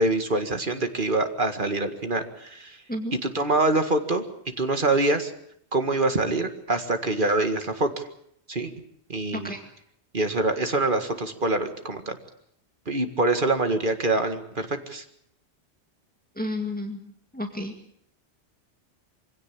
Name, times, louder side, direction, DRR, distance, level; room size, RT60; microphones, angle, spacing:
voice 1, 0.0-2.8 3.1-4.2 4.6-5.3 5.7-8.1 8.5-8.7 9.1-9.6 10.1-12.2 12.9-15.0, right 2 dB, 50° right, 7 dB, 2.1 m, -25 dB
voice 2, 16.4-17.0 17.3-17.7, left 1 dB, 10° left, 4 dB, 2.0 m, -31 dB
24.0 x 16.5 x 8.6 m, 0.70 s
omnidirectional pair, 1.1 m